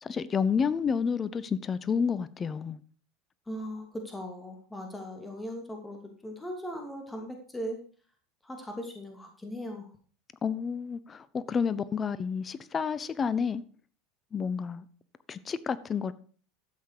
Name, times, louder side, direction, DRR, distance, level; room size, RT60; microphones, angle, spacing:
voice 1, 0.0-2.8 10.4-13.6 14.3-14.9 15.3-16.1, left 6 dB, 30° left, 0.8 m, -30 dB
voice 2, 3.5-7.8 8.4-9.9, equal, 10° left, 2.6 m, -39 dB
12.5 x 8.1 x 4.9 m
hypercardioid pair, 80°, 0 cm